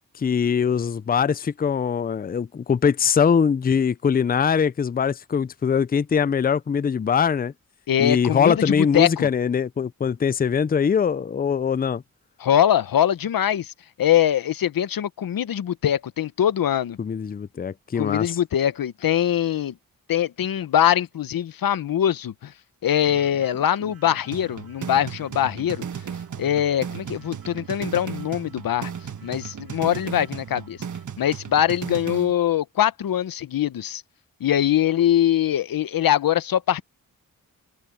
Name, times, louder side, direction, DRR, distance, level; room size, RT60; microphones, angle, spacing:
voice 1, 0.2-7.5 8.0-12.0 17.0-18.4, left 7 dB, 25° left, 0.4 m, -22 dB
voice 2, 7.9-9.3 12.4-13.7 14.0-17.0 18.0-19.7 20.1-22.5 22.8-25.8 26.4-28.9 29.2-30.8 31.2-34.0 34.4-36.8, left 10 dB, 80° left, 0.8 m, -22 dB
sound 1, 23.0-31.0, right 7 dB, 85° right, 3.2 m, -45 dB
sound 2, 24.3-32.3, right 7 dB, 60° right, 1.4 m, -35 dB
cardioid pair, 70°, 34 cm